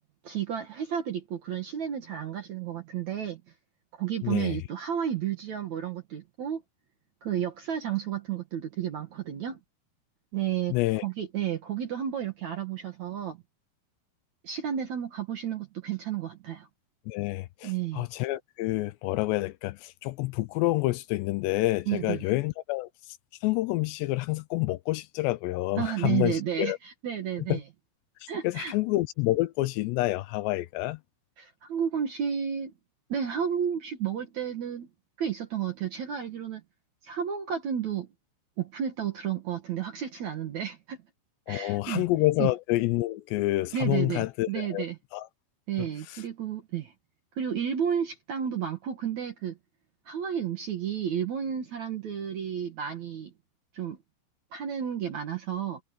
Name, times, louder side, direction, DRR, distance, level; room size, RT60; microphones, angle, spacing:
voice 1, 0.2-3.4 4.0-6.6 7.2-9.6 10.3-10.8 11.0-13.4 14.4-16.7 17.6-18.1 21.9-22.2 25.8-27.6 28.3-28.7 31.4-32.7 33.1-34.9 35.2-36.6 37.0-38.1 38.6-41.0 41.5-42.1 42.4-42.5 43.7-45.0 45.7-46.9 47.4-49.6 50.1-53.3 53.7-54.0 54.5-55.8, right 9 dB, 60° right, 2.0 m, -32 dB
voice 2, 4.2-4.6 10.7-11.0 17.1-22.9 23.4-26.8 27.5-27.6 28.4-31.0 41.5-44.8 45.1-45.3 45.8-46.2, left 18 dB, 80° left, 2.7 m, -28 dB
omnidirectional pair, 5.2 m